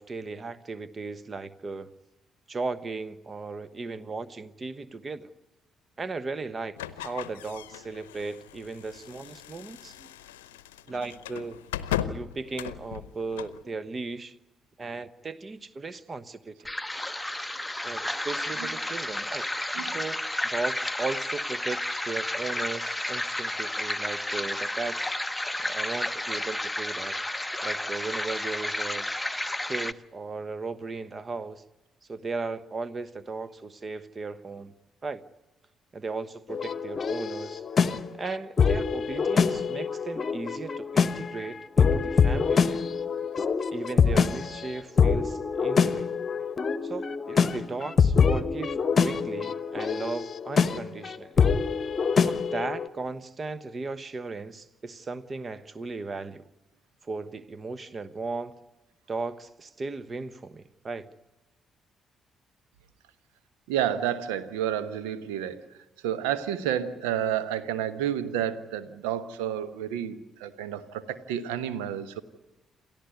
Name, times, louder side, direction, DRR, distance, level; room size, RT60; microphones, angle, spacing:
voice 1, 0.0-1.9 2.5-5.3 6.0-6.8 7.0-10.1 10.9-11.6 12.0-14.3 14.8-16.7 17.8-19.4 19.8-20.2 20.4-25.2 25.6-27.2 27.6-29.1 29.6-31.6 32.1-34.7 35.0-35.2 35.9-37.6 38.2-42.8 43.7-46.1 46.8-51.4 52.2-56.5 57.1-58.6 59.1-61.1, right 3 dB, 30° right, 17 dB, 1.1 m, -36 dB
sound 1, 6.8-13.6, left 11 dB, 75° left, 0.7 m, -37 dB
sound 2, 16.7-29.9, left 1 dB, 10° left, 0.8 m, -31 dB
sound 3, 36.5-52.9, left 6 dB, 40° left, 1.0 m, -25 dB
voice 2, 63.7-65.6 66.0-72.2, right 10 dB, 70° right, 13 dB, 1.1 m, -30 dB
28.0 x 14.0 x 9.6 m, 1.0 s
figure-of-eight pair, 45°, 0 cm